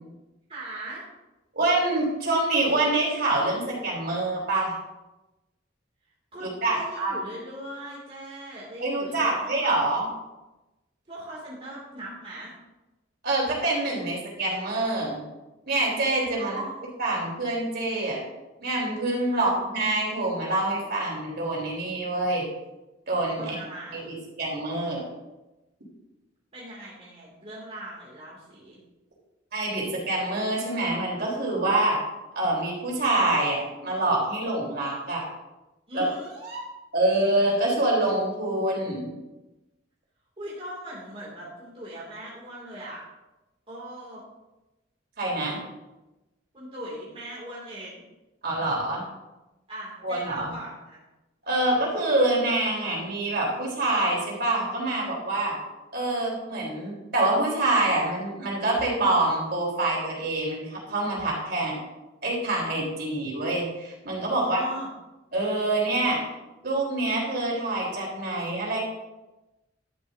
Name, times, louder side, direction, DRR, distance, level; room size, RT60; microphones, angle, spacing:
voice 1, 0.5-1.0 6.3-9.7 11.1-12.5 16.4-16.9 19.3-19.5 23.3-24.1 26.5-28.8 35.9-36.7 40.4-43.0 43.7-44.2 46.5-48.0 49.7-51.0 51.4-52.0 64.4-64.9, right 1 dB, 35° right, -6 dB, 2.5 m, -40 dB
voice 2, 1.5-4.7 6.4-7.1 8.8-10.0 13.2-15.2 15.7-16.6 17.0-18.2 18.6-22.5 23.1-23.6 23.9-25.0 29.5-32.0 32.4-35.3 35.9-36.1 36.9-39.1 45.2-45.6 48.4-49.0 50.0-50.5 51.5-55.6 55.9-61.8 62.2-64.6 65.3-66.2 66.6-68.8, right 2 dB, 60° right, -4 dB, 3.9 m, -26 dB
12.0 x 11.0 x 2.7 m, 1.0 s
head